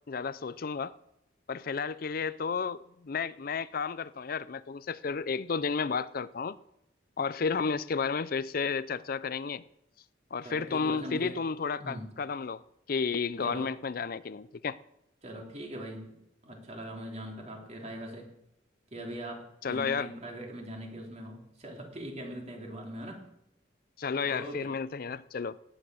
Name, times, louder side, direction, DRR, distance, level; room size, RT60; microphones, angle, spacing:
voice 1, 0.1-0.9 1.5-6.6 7.2-9.6 10.3-12.6 12.9-14.8 19.6-20.1 24.0-25.6, left 5 dB, 50° left, 0.5 m, -32 dB
voice 2, 10.4-11.4 11.8-12.1 13.4-13.7 15.2-16.1 16.4-18.3 18.9-23.2 24.2-24.7, equal, 35° right, 3.5 m, -41 dB
18.0 x 11.0 x 6.4 m
head